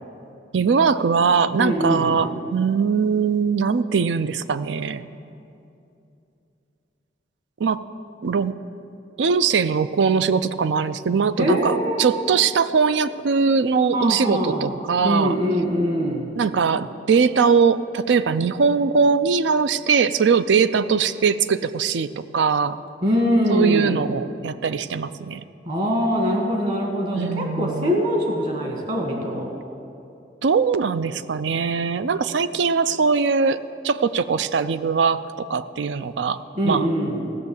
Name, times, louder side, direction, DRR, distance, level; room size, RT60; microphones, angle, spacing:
voice 1, 0.5-5.1 7.6-7.8 8.2-8.5 9.2-15.4 16.4-22.8 23.5-25.4 27.1-28.0 30.4-33.6 33.8-36.9, right 5 dB, 85° right, 14 dB, 0.4 m, -21 dB
voice 2, 1.6-2.2 11.4-12.2 13.9-14.8 15.0-16.3 23.0-24.2 25.6-29.5 36.6-37.3, equal, 45° right, 1 dB, 1.7 m, -23 dB
15.5 x 6.5 x 7.1 m, 2.7 s
head